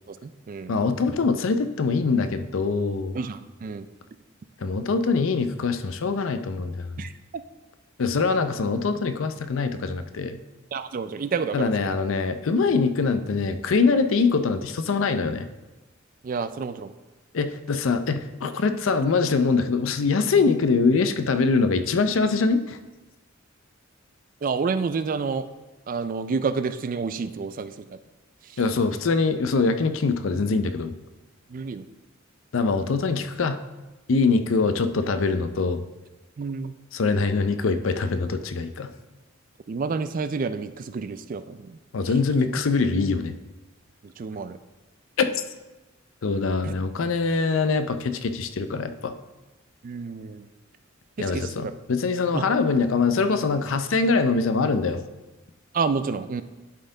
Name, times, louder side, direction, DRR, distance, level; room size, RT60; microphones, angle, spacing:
voice 1, 0.1-0.7 3.1-3.9 7.0-7.1 10.7-11.7 16.2-16.9 24.4-25.5 25.9-27.9 28.4-28.6 31.5-31.9 34.3-34.4 36.4-36.7 39.7-41.8 44.0-44.6 46.6-46.7 49.8-50.5 51.2-51.5 52.3-52.4 55.7-56.4, right 5 dB, 40° right, 12 dB, 0.3 m, -29 dB
voice 2, 0.7-3.2 4.6-7.0 8.0-10.4 11.5-15.5 17.3-22.8 28.6-31.0 32.5-33.6 34.1-35.8 36.9-38.9 41.9-43.3 45.2-45.3 46.2-49.1 51.2-55.0, left 4 dB, 70° left, 10 dB, 0.5 m, -23 dB
11.0 x 4.3 x 3.8 m, 1.1 s
head